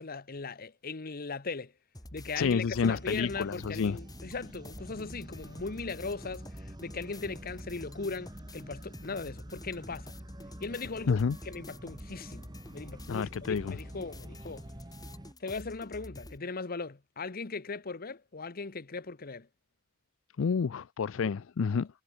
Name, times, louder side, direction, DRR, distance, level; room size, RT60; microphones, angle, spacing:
voice 1, 0.0-1.7 2.1-10.1 10.6-14.7 15.4-19.5 21.2-21.3, left 4 dB, 50° left, 1.0 m, -38 dB
sound 1, 1.9-16.4, left 1 dB, 20° left, 5.3 m, -48 dB
voice 2, 2.4-4.0 11.1-11.4 13.1-13.8 20.4-21.9, left 5 dB, 70° left, 0.4 m, -29 dB
sound 2, 2.6-15.3, right 1 dB, 20° right, 1.4 m, -48 dB
head